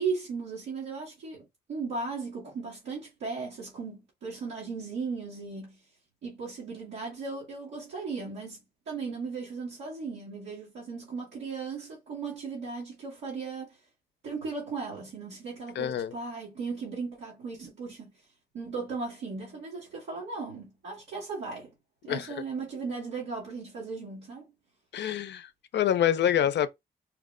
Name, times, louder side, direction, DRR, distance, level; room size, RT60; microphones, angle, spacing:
voice 1, 0.0-1.4 1.7-5.8 6.2-13.8 14.2-18.1 18.5-21.7 22.0-24.5, right 4 dB, 90° right, 1.9 m, -36 dB
voice 2, 15.8-16.1 22.1-22.3 24.9-26.7, left 10 dB, 75° left, 0.5 m, -26 dB
4.5 x 2.1 x 3.6 m
supercardioid pair, 45°, 18 cm